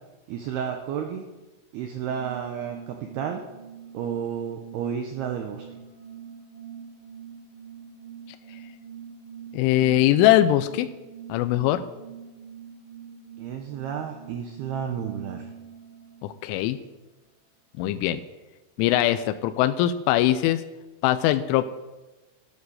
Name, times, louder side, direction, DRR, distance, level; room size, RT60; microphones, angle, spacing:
voice 1, 0.3-1.3 1.7-3.4 3.9-5.7 13.4-15.5, right 8 dB, 85° right, 4 dB, 2.3 m, -31 dB
sound 1, 2.0-16.4, right 7 dB, 30° left, 4.6 m, -44 dB
voice 2, 9.5-10.9 11.3-11.8 16.2-16.8 17.8-18.2 18.8-20.6 21.0-21.6, left 13 dB, 85° left, 9 dB, 3.0 m, -21 dB
12.5 x 9.5 x 6.5 m, 1.1 s
omnidirectional pair, 5.8 m